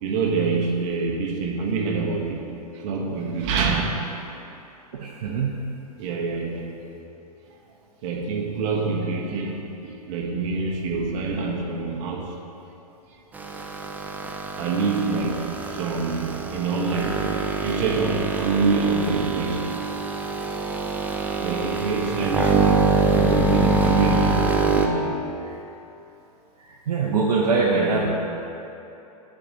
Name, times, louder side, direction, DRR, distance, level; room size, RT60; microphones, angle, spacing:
voice 1, 0.0-2.4 2.7-4.3 6.0-6.7 8.0-12.4 14.6-17.2 17.6-19.6 21.4-25.2 27.7-28.1, right 4 dB, 50° right, -1 dB, 1.4 m, -26 dB
voice 2, 4.9-5.6 26.6-28.1, right 4 dB, 70° right, -3 dB, 0.9 m, -23 dB
sound 1, 13.3-24.9, right 3 dB, 10° right, 0.5 m, -24 dB
9.9 x 5.0 x 4.1 m, 3.0 s
hypercardioid pair, 115°, 20 cm